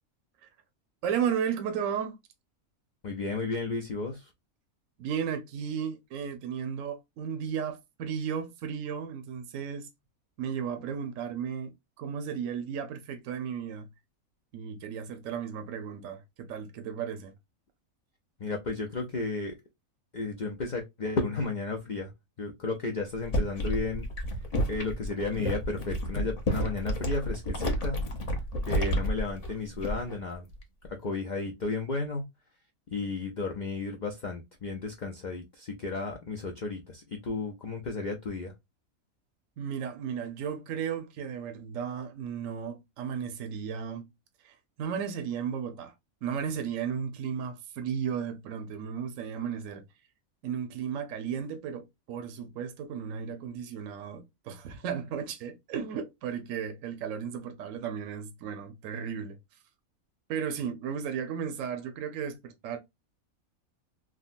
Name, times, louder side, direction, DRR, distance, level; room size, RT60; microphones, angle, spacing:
voice 1, 1.0-2.2 5.0-9.9 10.4-13.9 14.5-17.3 39.6-44.1 44.4-45.9 46.2-49.8 50.4-59.4 60.3-62.8, right 7 dB, 70° right, 1.0 m, -34 dB
voice 2, 3.0-4.3 18.4-19.6 20.1-22.1 22.4-28.0 28.7-30.5 30.8-32.2 32.9-38.5, left 3 dB, 85° left, 0.4 m, -33 dB
sound 1, 23.2-30.2 30.5-30.9, equal, 35° left, 0.7 m, -30 dB
3.6 x 2.1 x 2.4 m
omnidirectional pair, 1.5 m